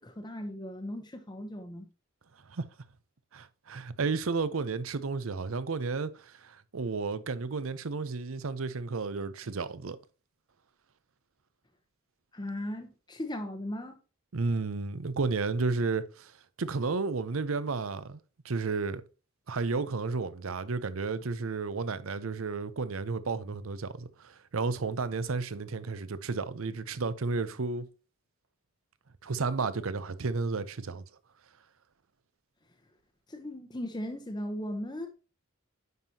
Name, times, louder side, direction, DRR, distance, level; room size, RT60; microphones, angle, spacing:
voice 1, 0.0-1.9 12.3-14.0 33.3-35.1, left 1 dB, 20° left, 0.8 m, -37 dB
voice 2, 3.3-10.0 14.3-16.3 16.6-18.2 18.4-19.0 19.5-27.9 29.2-31.0, right 4 dB, 75° right, 0.7 m, -32 dB
9.4 x 5.6 x 2.9 m
head